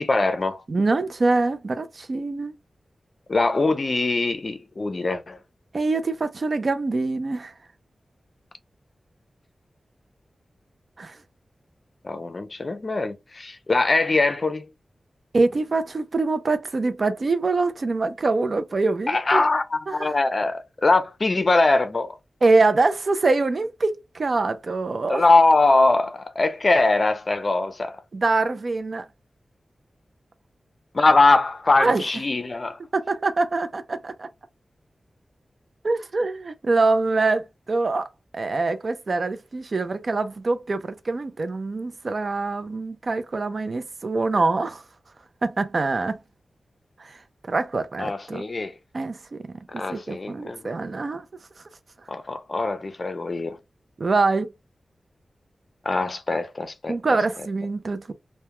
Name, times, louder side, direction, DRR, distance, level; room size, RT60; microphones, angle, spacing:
voice 1, 0.0-0.6 3.3-5.4 12.0-14.7 19.1-22.2 25.1-28.0 30.9-32.8 48.0-48.7 49.7-50.6 52.1-53.6 55.8-57.2, left 3 dB, 40° left, 0.5 m, -22 dB
voice 2, 0.7-2.5 5.7-7.5 11.0-11.2 15.3-19.4 19.9-20.1 22.4-25.2 28.1-29.1 31.8-32.0 32.9-34.3 35.8-38.1 38.3-44.8 45.4-46.2 47.0-47.1 47.5-48.4 48.9-49.4 49.7-51.3 54.0-54.5 56.9-58.1, right 3 dB, 50° right, 0.4 m, -24 dB
2.2 x 2.1 x 2.9 m
wide cardioid pair, 130°, 0 cm